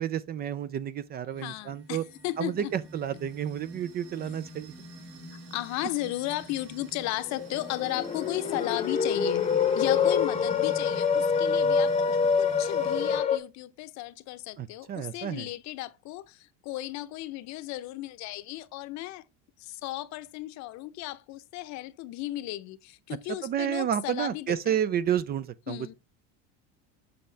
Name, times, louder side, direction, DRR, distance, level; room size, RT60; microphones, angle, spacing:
voice 1, 0.0-2.0 2.4-4.7 14.6-15.5 23.4-25.8, right 9 dB, 30° right, 0.4 m, -30 dB
sound 1, 1.3-13.2, right 1 dB, 70° right, 3.6 m, -46 dB
voice 2, 1.4-2.7 5.5-9.5 9.7-19.2 19.6-24.8 25.7-25.9, left 16 dB, 55° left, 0.8 m, -35 dB
sound 2, 7.2-13.4, left 6 dB, 20° left, 0.8 m, -26 dB
7.8 x 5.7 x 3.3 m
cardioid pair, 140°, 33 cm